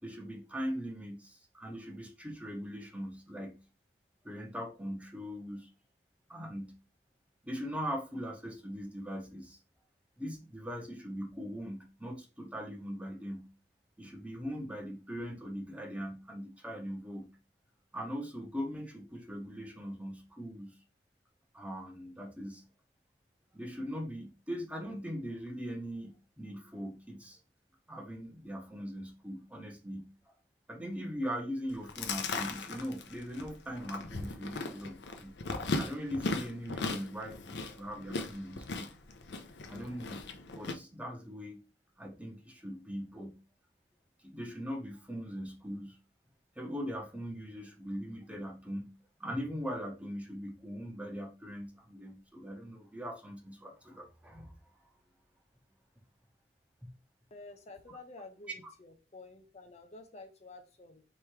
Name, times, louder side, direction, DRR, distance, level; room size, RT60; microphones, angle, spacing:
voice 1, 0.0-3.6 4.2-5.7 6.3-6.8 7.4-9.6 10.2-13.5 14.0-17.3 17.9-20.8 21.5-22.6 23.5-27.4 27.9-30.1 30.7-35.4 35.7-38.9 39.6-40.3 40.5-41.6 42.0-43.4 44.2-46.0 46.6-48.9 49.2-54.5, equal, 10° right, 2 dB, 0.8 m, -40 dB
Chewing mastication, 31.7-40.7, left 3 dB, 80° left, 0.6 m, -38 dB
voice 2, 57.3-61.0, left 3 dB, 40° left, 6 dB, 0.5 m, -51 dB
3.4 x 3.1 x 4.7 m, 0.32 s
head